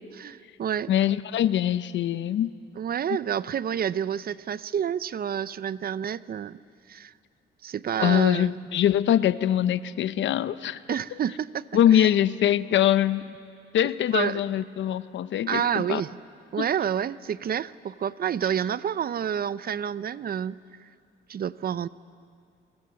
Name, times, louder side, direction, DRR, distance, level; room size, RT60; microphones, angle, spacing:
voice 1, 0.2-0.9 2.8-6.6 6.9-7.1 7.6-8.5 10.9-11.7 11.9-12.1 14.1-14.4 15.5-16.1 16.5-20.9 21.3-21.9, right 8 dB, 50° right, 17 dB, 0.7 m, -29 dB
voice 2, 0.9-2.5 8.0-10.8 11.7-13.2 13.7-16.0 16.6-16.7, left 11 dB, 70° left, 15 dB, 0.8 m, -23 dB
28.0 x 23.5 x 7.7 m, 2.3 s
cardioid pair, 90°, 20 cm